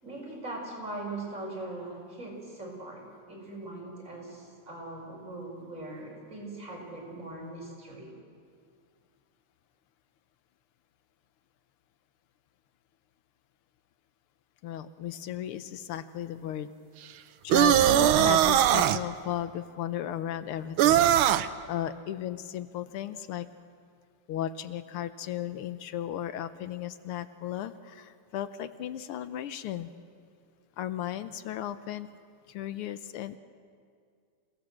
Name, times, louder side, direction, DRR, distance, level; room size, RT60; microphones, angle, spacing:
voice 1, 0.0-8.1, right 2 dB, 35° right, -3 dB, 6.2 m, -40 dB
voice 2, 14.6-16.7 17.4-21.0 21.3-23.5 24.3-29.9 30.8-32.1 32.5-33.4, left 11 dB, 80° left, 12 dB, 1.7 m, -35 dB
sound 1, 17.5-19.0 20.8-21.5, right 11 dB, 75° right, 1.5 m, -20 dB
27.5 x 17.5 x 7.6 m, 2.2 s
omnidirectional pair, 2.4 m